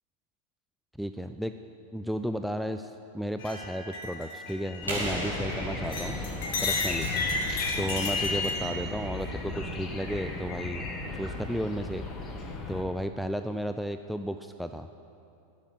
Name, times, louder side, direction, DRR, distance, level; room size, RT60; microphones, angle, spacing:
voice 1, 1.0-1.5 1.9-6.2 6.6-7.1 7.8-10.9 11.1-12.0 12.7-14.9, equal, ahead, 7 dB, 0.3 m, -33 dB
sound 1, 3.4-5.5 5.8-8.5, left 4 dB, 50° left, 1.9 m, -33 dB
sound 2, 4.8-12.8, left 2 dB, 25° left, 1.3 m, -36 dB
sound 3, 4.9-7.5, right 1 dB, 90° right, 3.6 m, -36 dB
10.5 x 7.2 x 9.3 m, 2.7 s
figure-of-eight pair, 90°, 0 cm